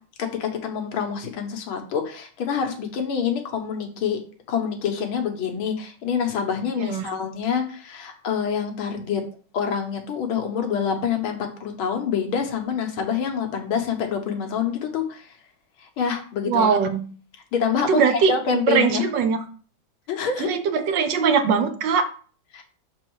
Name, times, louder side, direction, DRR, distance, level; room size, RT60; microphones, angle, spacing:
voice 1, 0.2-4.2 4.5-9.2 9.5-15.3 15.8-16.7 17.5-19.1 20.1-20.5 22.5-22.6, left 7 dB, 85° left, 4 dB, 1.9 m, -26 dB
voice 2, 6.8-7.1 16.5-17.1 17.9-18.3 18.7-19.4 20.4-22.1, right 6 dB, 70° right, 8 dB, 1.3 m, -21 dB
6.3 x 4.0 x 4.6 m, 0.42 s
omnidirectional pair, 2.2 m